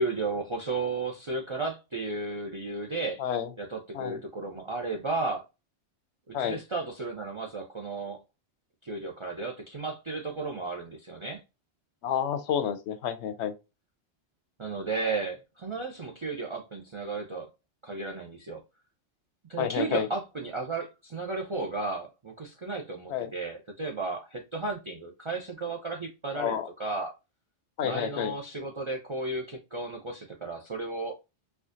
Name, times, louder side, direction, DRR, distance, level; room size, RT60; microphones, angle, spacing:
voice 1, 0.0-3.2 3.6-5.4 6.3-8.2 8.8-11.4 14.6-17.5 17.8-18.6 19.5-27.1 27.8-31.1, right 3 dB, 45° right, 0.3 m, -34 dB
voice 2, 3.2-3.5 3.9-4.2 6.3-6.6 12.0-13.5 19.6-20.1 23.1-23.3 26.3-26.7 27.8-28.3, left 9 dB, 80° left, 0.9 m, -29 dB
4.3 x 2.4 x 2.5 m
omnidirectional pair, 1.2 m